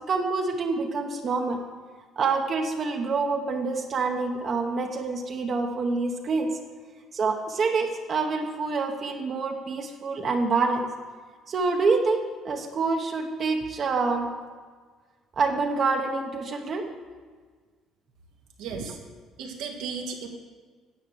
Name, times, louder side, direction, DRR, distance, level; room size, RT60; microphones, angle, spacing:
voice 1, 0.1-1.6 2.2-6.5 7.1-10.8 11.5-14.3 15.4-16.8 18.8-18.9, right 4 dB, 35° right, 3 dB, 0.9 m, -26 dB
voice 2, 18.6-19.0 19.4-20.3, right 5 dB, 90° right, 1 dB, 1.7 m, -35 dB
9.9 x 6.6 x 6.9 m, 1.5 s
cardioid pair, 145°, 0 cm